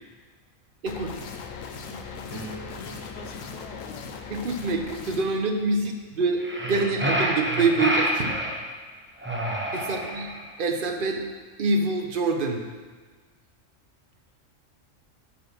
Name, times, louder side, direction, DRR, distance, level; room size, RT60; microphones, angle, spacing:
sound 1, 0.9-5.2, left 6 dB, 85° left, 1.0 m, -39 dB
voice 1, 1.6-4.2 9.8-10.2, left 3 dB, 45° left, 3 dB, 0.6 m, -47 dB
sound 2, 2.3-8.1 8.7-9.1, right 1 dB, 15° left, 2.4 m, -47 dB
voice 2, 4.3-8.4 9.7-10.3 10.6-11.2 11.6-12.6, right 3 dB, 50° right, 4 dB, 0.8 m, -26 dB
sound 3, 6.4-8.6 9.2-10.5, equal, 10° right, 0.8 m, -27 dB
8.7 x 3.8 x 5.9 m, 1.5 s
omnidirectional pair, 1.3 m